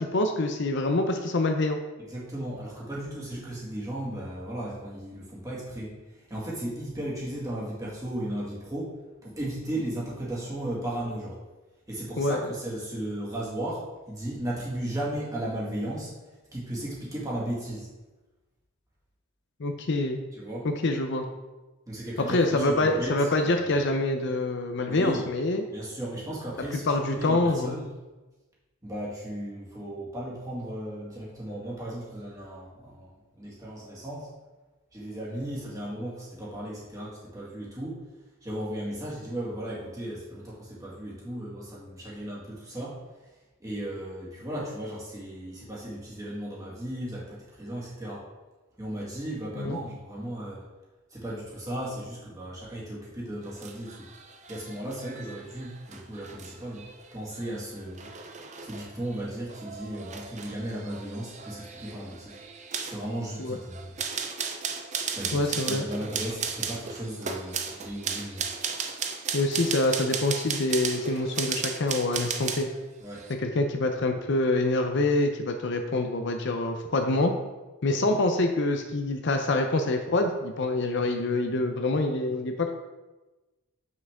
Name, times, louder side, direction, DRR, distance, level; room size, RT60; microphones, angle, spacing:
voice 1, 0.0-1.8 12.2-12.4 19.6-20.2 20.8-21.3 22.3-25.6 26.8-27.8 49.6-49.8 63.4-63.6 65.3-65.9 69.3-72.7 73.3-77.3 77.8-82.7, left 2 dB, 55° left, 5 dB, 0.6 m, -26 dB
voice 2, 2.1-11.4 11.9-16.1 16.5-17.9 20.3-20.7 21.9-23.3 23.6-23.7 24.9-25.2 25.7-27.9 28.8-34.3 34.9-38.1 38.4-43.0 43.6-48.3 48.8-50.7 51.1-54.1 54.5-58.1 58.6-62.4 62.9-63.9 65.1-68.4 73.0-73.3, right 1 dB, 15° right, -6 dB, 2.0 m, -35 dB
sound 1, 53.4-72.8 73.1-73.3, right 6 dB, 30° right, 0.5 m, -36 dB
7.4 x 6.0 x 3.6 m, 1.1 s
head